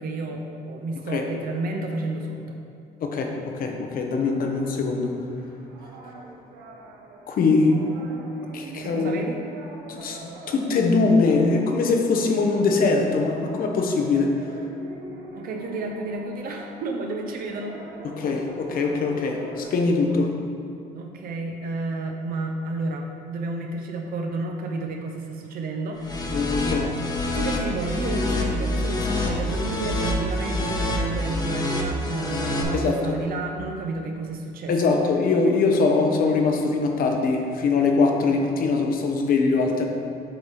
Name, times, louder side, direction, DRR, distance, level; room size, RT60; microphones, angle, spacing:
voice 1, 0.0-2.6 8.8-9.4 15.3-17.8 20.1-20.2 20.9-26.4 27.3-35.0, right 2 dB, 60° right, 2 dB, 0.7 m, -31 dB
voice 2, 3.0-5.2 7.3-7.8 8.5-9.1 9.9-14.4 18.0-20.3 26.3-26.9 32.7-33.2 34.7-39.9, left 4 dB, 60° left, 3 dB, 0.9 m, -22 dB
sound 1, 4.1-19.8, right 2 dB, 85° right, 1.0 m, -43 dB
sound 2, 26.0-32.6, left 1 dB, 25° left, 1.0 m, -27 dB
7.8 x 3.3 x 5.6 m, 2.5 s
cardioid pair, 110°, 17 cm